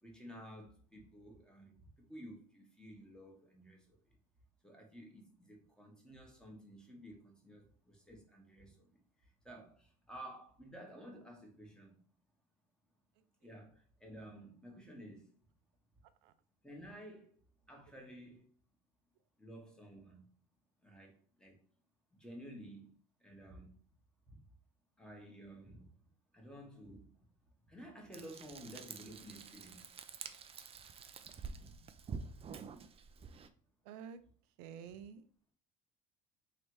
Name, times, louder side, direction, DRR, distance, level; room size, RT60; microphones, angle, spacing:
voice 1, 0.0-4.2 4.6-12.0 13.4-15.3 16.6-17.4 17.7-18.5 19.4-20.2 20.8-21.6 22.1-22.9 23.2-23.8 24.3-24.4 25.0-26.0 26.3-27.3 27.6-29.9, equal, 5° left, 1 dB, 1.5 m, -53 dB
Frying (food), 28.1-33.5, right 5 dB, 30° right, 0.5 m, -48 dB
voice 2, 33.8-34.2 34.6-35.3, right 7 dB, 90° right, 12 dB, 0.5 m, -49 dB
3.2 x 2.9 x 4.6 m, 0.43 s
supercardioid pair, 100°, 20 cm